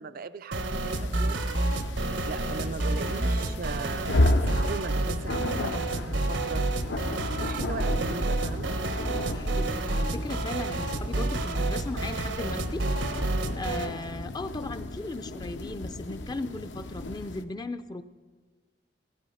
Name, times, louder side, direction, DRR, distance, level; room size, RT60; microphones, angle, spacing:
voice 1, 0.0-1.9 2.3-6.6 7.3-8.8, right 4 dB, 50° right, 13 dB, 0.4 m, -39 dB
sound 1, 0.5-13.9, right 2 dB, 85° right, 1.2 m, -29 dB
sound 2, 0.8-17.4, left 1 dB, 75° left, 0.8 m, -33 dB
voice 2, 9.3-13.2 13.5-18.0, left 2 dB, 20° left, 10 dB, 0.4 m, -37 dB
14.5 x 13.5 x 5.6 m, 1.4 s
head